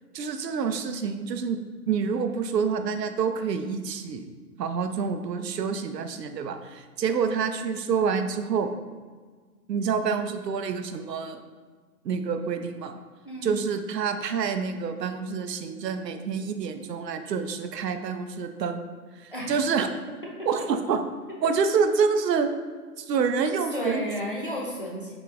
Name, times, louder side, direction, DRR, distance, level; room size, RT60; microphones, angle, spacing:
voice 1, 0.1-1.6 1.9-4.3 4.6-8.7 9.7-11.4 12.0-13.0 13.4-18.8 19.2-19.9 20.5-21.0 21.4-22.5 23.0-24.0, right 6 dB, 85° right, 7 dB, 0.6 m, -27 dB
voice 2, 13.2-13.6 19.3-19.5 21.4-21.5 23.7-25.2, equal, 35° left, -4 dB, 0.5 m, -33 dB
4.9 x 4.0 x 2.4 m, 1.5 s
hypercardioid pair, 175°, 48 cm